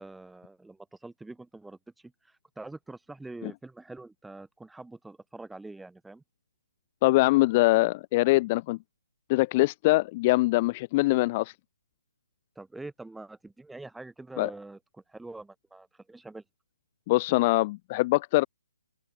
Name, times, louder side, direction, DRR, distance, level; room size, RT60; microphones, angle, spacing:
voice 1, 0.0-6.2 12.6-16.4, right 2 dB, 5° right, 3.7 m, -45 dB
voice 2, 7.0-8.8 9.3-11.5 14.4-14.5 17.1-18.5, left 20 dB, 25° left, 0.3 m, -23 dB
figure-of-eight pair, 135°, 0 cm